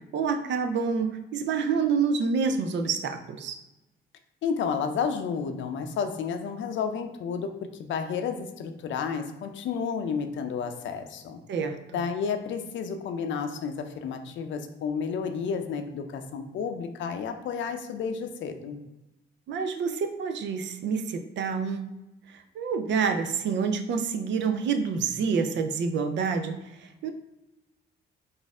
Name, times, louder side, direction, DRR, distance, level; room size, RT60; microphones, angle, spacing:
voice 1, 0.1-3.6 11.5-12.0 19.5-21.8 22.3-27.1, right 5 dB, 65° right, 7 dB, 0.5 m, -28 dB
voice 2, 4.4-7.5 7.8-11.4 11.9-18.8, left 6 dB, 70° left, 7 dB, 0.5 m, -31 dB
4.1 x 2.5 x 3.5 m, 0.97 s
cardioid pair, 90°, 20 cm